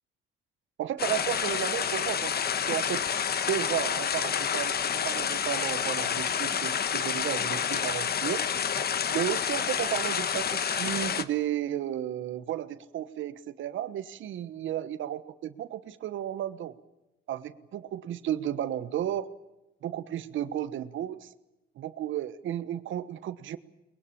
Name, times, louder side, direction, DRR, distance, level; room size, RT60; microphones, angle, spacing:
voice 1, 0.8-2.3 2.6-3.0 3.5-8.4 9.1-16.7 17.3-19.3 19.8-21.3 21.8-23.6, right 11 dB, 75° right, 14 dB, 1.3 m, -33 dB
sound 1, 1.0-11.2, left 7 dB, 55° left, 1.3 m, -29 dB
22.5 x 21.5 x 8.7 m, 0.96 s
cardioid pair, 90°, 20 cm